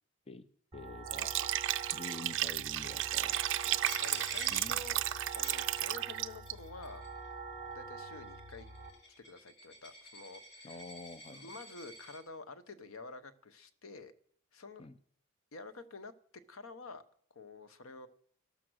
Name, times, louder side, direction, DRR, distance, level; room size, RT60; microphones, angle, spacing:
voice 1, 0.3-1.4 1.9-3.5 4.5-4.8 10.6-11.5 14.8-14.9, left 3 dB, 25° left, 13 dB, 0.5 m, -47 dB
sound 1, 0.7-8.9, right 4 dB, 20° right, 4.2 m, -46 dB
Liquid, 1.0-6.5, right 14 dB, 60° right, 0.5 m, -33 dB
voice 2, 3.6-5.0 5.3-7.0 7.7-8.7 9.2-10.8 11.3-14.1 14.5-14.9 15.5-16.1 16.5-17.0 17.3-18.1, left 3 dB, 70° left, 13 dB, 1.0 m, -49 dB
Coin (dropping), 3.9-6.2 6.5-7.3 8.0-12.2, left 1 dB, 50° left, 3.6 m, -50 dB
13.0 x 12.5 x 6.3 m, 0.63 s
head